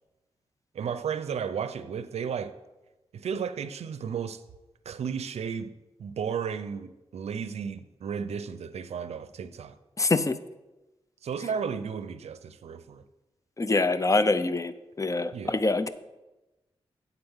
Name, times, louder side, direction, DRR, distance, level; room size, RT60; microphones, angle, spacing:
voice 1, 0.7-2.5 3.1-4.4 4.9-5.7 6.0-9.7 11.2-13.0 15.3-15.6, right 7 dB, 85° right, 0.5 m, -33 dB
voice 2, 10.0-10.4 13.6-14.7 15.0-15.9, left 3 dB, 30° left, 0.6 m, -24 dB
9.0 x 4.0 x 7.1 m
cardioid pair, 55°, 11 cm